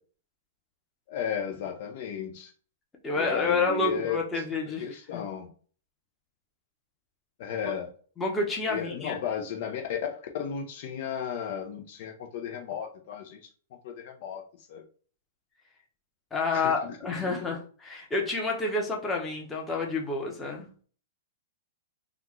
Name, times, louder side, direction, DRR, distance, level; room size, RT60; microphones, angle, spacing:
voice 1, 1.1-2.5 3.1-4.3 4.7-5.5 7.4-7.9 8.7-13.4 13.8-14.4 14.7-14.8 16.5-17.0, left 8 dB, 55° left, 3 dB, 0.7 m, -34 dB
voice 2, 3.0-5.2 8.2-9.2 16.3-20.7, left 3 dB, 15° left, 0 dB, 1.1 m, -29 dB
3.6 x 2.4 x 3.1 m, 0.42 s
hypercardioid pair, 125°, 0 cm